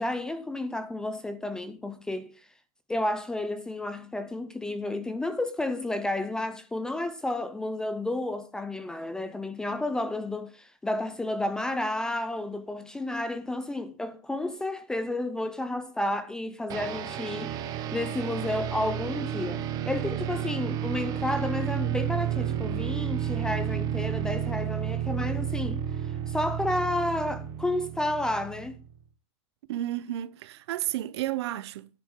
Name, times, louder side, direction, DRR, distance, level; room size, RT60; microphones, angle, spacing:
voice 1, 0.0-2.3 2.9-25.9 26.3-28.8, left 1 dB, 5° left, 0.4 m, -31 dB
sound 1, 16.7-28.9, right 10 dB, 25° right, 0.8 m, -31 dB
voice 2, 29.7-31.9, right 13 dB, 55° right, 0.6 m, -32 dB
10.0 x 9.7 x 3.7 m
supercardioid pair, 170°, 16 cm